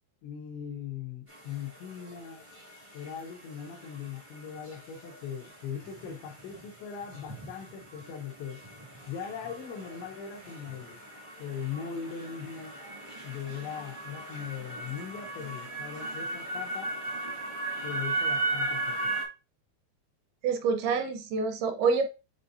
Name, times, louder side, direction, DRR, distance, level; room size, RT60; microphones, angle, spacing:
voice 1, 0.2-2.4 2.9-8.6 9.1-11.0 11.4-12.8 13.2-16.9 17.8-19.2, left 8 dB, 90° left, 3.3 m, -40 dB
sound 1, 1.3-19.2, right 2 dB, 35° right, 0.5 m, -38 dB
voice 2, 20.4-22.1, right 5 dB, 80° right, 2.3 m, -27 dB
9.9 x 3.8 x 2.7 m
omnidirectional pair, 5.0 m